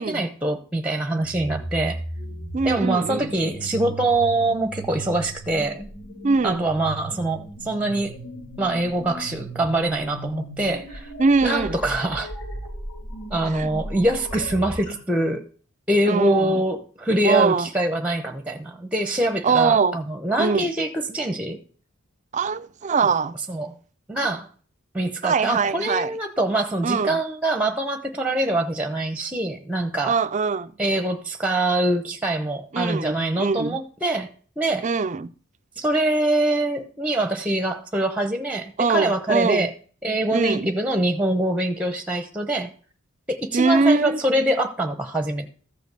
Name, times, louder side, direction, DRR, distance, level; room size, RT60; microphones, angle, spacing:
voice 1, 0.0-2.0 2.6-5.8 6.4-8.2 8.6-11.1 11.4-12.3 13.3-15.4 15.9-21.6 23.5-23.7 24.1-24.5 24.9-30.2 30.8-34.3 34.6-34.9 35.8-39.7 40.0-42.7 43.3-45.5, right 1 dB, 5° right, 0.8 m, -24 dB
sound 1, 1.2-15.0, right 1 dB, 65° left, 4.0 m, -36 dB
voice 2, 2.5-3.3 6.2-6.6 11.2-11.8 13.5-13.7 16.1-16.6 17.2-17.7 19.4-20.0 20.4-20.7 22.3-23.4 25.2-26.1 26.8-27.2 30.0-30.7 32.7-33.8 34.8-35.3 38.8-39.7 40.3-40.7 43.5-44.2, right 4 dB, 35° right, 0.4 m, -22 dB
14.0 x 5.1 x 6.7 m
head